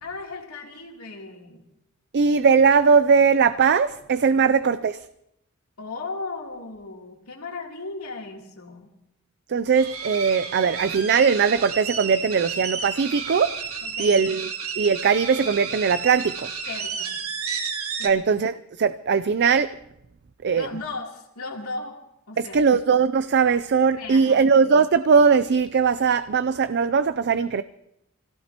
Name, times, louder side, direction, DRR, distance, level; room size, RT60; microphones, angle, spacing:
voice 1, 0.0-1.7 4.4-4.6 5.8-8.9 13.8-14.2 16.6-17.2 18.0-18.2 20.6-22.0 22.3-22.6 23.9-24.4, left 3 dB, 85° left, 3.2 m, -36 dB
voice 2, 2.1-5.0 9.5-13.6 14.0-14.5 14.8-16.5 18.0-19.8 20.4-20.7 22.4-27.6, right 5 dB, 50° right, 0.5 m, -20 dB
sound 1, 9.7-18.1, right 6 dB, 75° right, 1.7 m, -32 dB
26.5 x 17.0 x 2.9 m
head